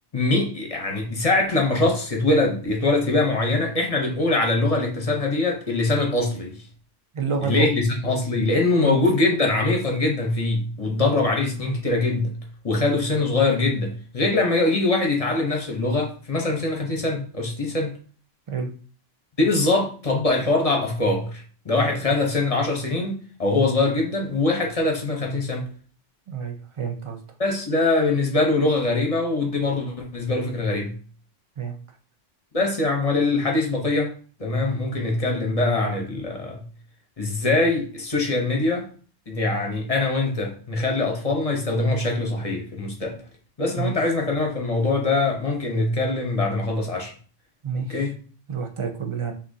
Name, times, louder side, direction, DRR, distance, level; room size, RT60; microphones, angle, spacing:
voice 1, 0.1-6.6 7.4-12.3 12.6-17.9 19.4-23.1 23.4-25.7 27.4-30.9 32.5-34.1 34.4-36.7 37.2-38.9 39.3-43.2 43.6-47.1 47.7-48.1, left 2 dB, 35° left, 0.8 m, -23 dB
voice 2, 7.1-7.7 8.8-9.1 18.5-18.7 21.9-22.0 26.3-27.2 31.6-31.8 43.8-43.9 47.6-48.1 48.5-49.3, right 5 dB, 45° right, 0.4 m, -28 dB
6.2 x 2.7 x 2.7 m
omnidirectional pair, 1.3 m